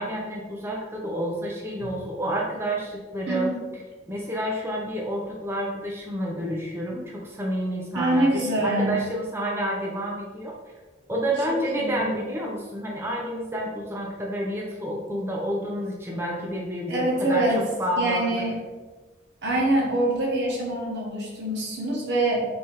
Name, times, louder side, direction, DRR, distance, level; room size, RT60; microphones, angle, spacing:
voice 1, 0.0-10.5 11.1-18.3, right 1 dB, 15° right, -3 dB, 0.5 m, -29 dB
voice 2, 3.3-3.6 7.9-9.0 11.8-12.1 16.9-17.6 18.0-18.5 19.4-22.4, right 1 dB, 75° right, -2 dB, 1.1 m, -24 dB
5.4 x 2.8 x 3.3 m, 1.3 s
head